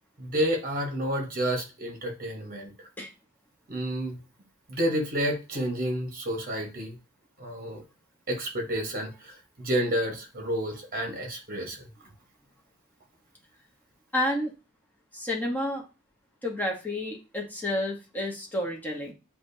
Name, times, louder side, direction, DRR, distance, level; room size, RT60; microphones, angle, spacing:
voice 1, 0.2-2.9 3.7-4.2 4.7-7.0 7.4-7.8 8.3-11.8, equal, 40° right, 2 dB, 1.2 m, -30 dB
voice 2, 14.1-14.5 15.1-15.8 16.4-19.1, left 1 dB, 10° left, -1 dB, 1.0 m, -30 dB
7.3 x 2.4 x 2.7 m, 0.30 s
head